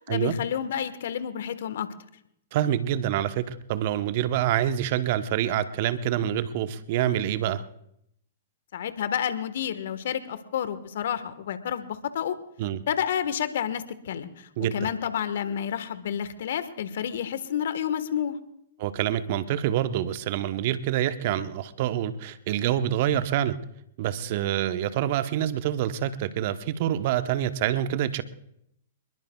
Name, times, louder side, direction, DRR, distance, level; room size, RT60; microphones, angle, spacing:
voice 1, 0.1-1.9 8.7-12.4 12.9-18.4, left 9 dB, 60° left, 12 dB, 1.4 m, -30 dB
voice 2, 2.5-7.6 12.6-12.8 14.6-14.9 18.8-23.6 24.0-28.2, right 11 dB, 50° right, 11 dB, 1.0 m, -26 dB
25.5 x 22.0 x 2.4 m, 0.77 s
figure-of-eight pair, 110°, 0 cm